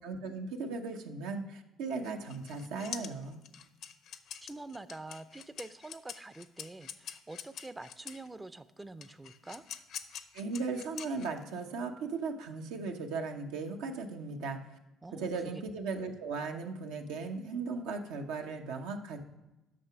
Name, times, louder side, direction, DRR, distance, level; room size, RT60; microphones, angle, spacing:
voice 1, 0.0-3.4 10.3-14.6 15.1-19.2, right 4 dB, 90° right, 3 dB, 0.9 m, -37 dB
sound 1, 2.0-8.3 9.0-11.6, left 9 dB, 65° left, 0.6 m, -45 dB
voice 2, 4.4-9.6 15.0-15.6, right 2 dB, 15° right, 13 dB, 0.4 m, -46 dB
8.8 x 6.0 x 5.8 m, 0.97 s
supercardioid pair, 80°, 0 cm